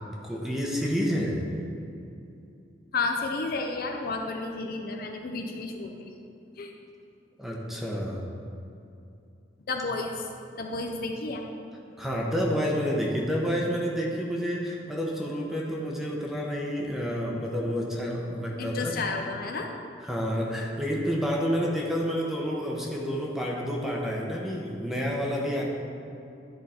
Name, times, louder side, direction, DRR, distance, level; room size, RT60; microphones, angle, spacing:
voice 1, 0.0-1.5 7.4-8.3 12.0-19.0 20.0-25.6, equal, ahead, -2 dB, 0.9 m, -29 dB
voice 2, 2.9-6.1 6.6-6.7 9.7-10.2 10.6-11.4 18.6-19.7, left 3 dB, 55° left, 3 dB, 0.5 m, -31 dB
10.5 x 3.9 x 4.3 m, 2.7 s
head